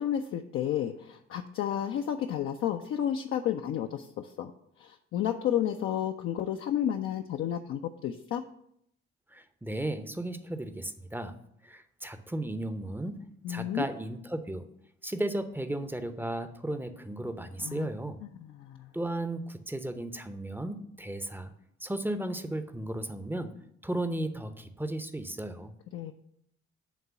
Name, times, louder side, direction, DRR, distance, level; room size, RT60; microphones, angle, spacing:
voice 1, 0.0-4.5 4.8-8.4 13.4-13.9 17.6-17.9 18.4-18.9 25.9-26.1, left 10 dB, 45° left, 5 dB, 0.5 m, -31 dB
voice 2, 9.3-11.3 11.6-13.2 13.5-14.7 15.0-18.2 18.9-21.5 21.8-23.5 23.8-25.7, right 1 dB, 5° right, 9 dB, 0.7 m, -35 dB
8.3 x 3.7 x 6.8 m, 0.73 s
figure-of-eight pair, 40°, 32 cm